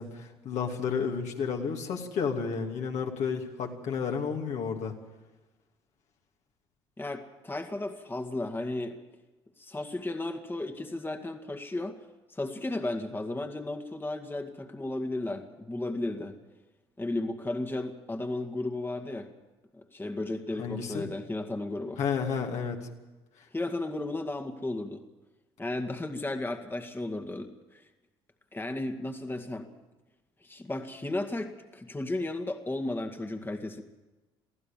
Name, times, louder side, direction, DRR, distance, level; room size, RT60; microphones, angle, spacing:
voice 1, 0.0-4.9 20.6-21.1 22.0-22.8, left 6 dB, 60° left, 1 dB, 2.7 m, -31 dB
voice 2, 7.0-9.0 9.6-12.0 12.3-16.4 17.0-19.3 19.9-22.0 23.5-25.0 25.6-27.8 28.5-29.7 30.4-33.8, left 2 dB, 15° left, 5 dB, 2.0 m, -34 dB
24.0 x 15.0 x 7.4 m, 1.2 s
hypercardioid pair, 55°, 13 cm